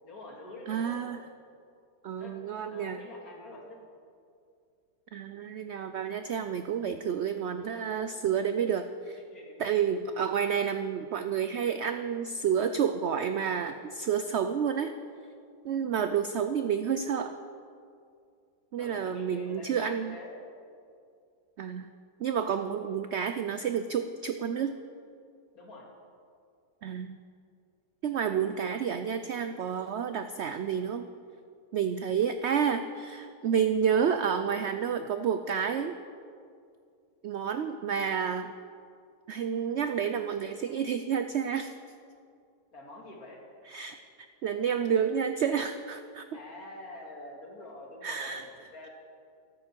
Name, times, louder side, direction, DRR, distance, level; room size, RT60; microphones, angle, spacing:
voice 1, 0.0-1.1 2.2-2.4 2.7-3.8 9.3-9.6 18.8-20.3 25.5-25.9 42.7-43.4 46.3-48.9, left 2 dB, 65° left, -2 dB, 2.8 m, -46 dB
voice 2, 0.7-1.2 2.0-3.0 5.1-9.2 9.6-14.9 15.6-17.4 18.7-20.2 21.6-21.9 22.2-24.7 26.8-27.2 28.0-31.1 31.7-36.0 37.2-38.5 39.3-41.7 43.7-44.0 44.4-46.2 48.0-48.5, right 7 dB, 75° right, 9 dB, 0.6 m, -30 dB
14.5 x 12.5 x 4.5 m, 2.3 s
omnidirectional pair, 1.7 m